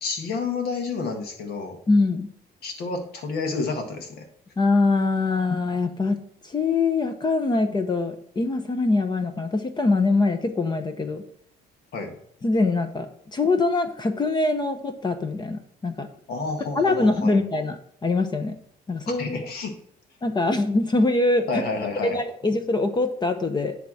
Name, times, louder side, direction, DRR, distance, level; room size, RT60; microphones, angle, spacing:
voice 1, 0.0-1.8 2.6-4.2 11.9-12.2 16.3-17.4 19.2-19.7 21.5-22.2, left 4 dB, 70° left, 4 dB, 1.8 m, -30 dB
voice 2, 1.9-2.3 4.6-11.2 12.4-16.1 16.8-17.8 18.0-18.5 18.9-19.5 20.2-21.5 22.0-23.8, left 3 dB, 25° left, 8 dB, 0.8 m, -23 dB
10.5 x 3.5 x 6.4 m, 0.67 s
cardioid pair, 110°, 17 cm